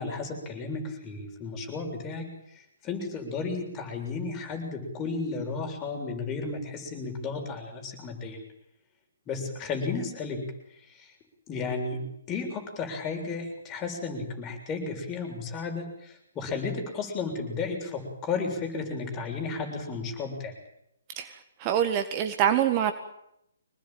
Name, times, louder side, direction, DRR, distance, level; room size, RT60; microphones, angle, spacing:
voice 1, 0.0-2.3 2.8-8.4 9.3-10.4 11.5-12.0 12.3-20.5, left 4 dB, 20° left, 2 dB, 6.9 m, -33 dB
voice 2, 21.6-22.9, right 10 dB, 30° right, 8 dB, 1.8 m, -25 dB
25.5 x 19.5 x 9.2 m, 0.78 s
figure-of-eight pair, 130°, 0 cm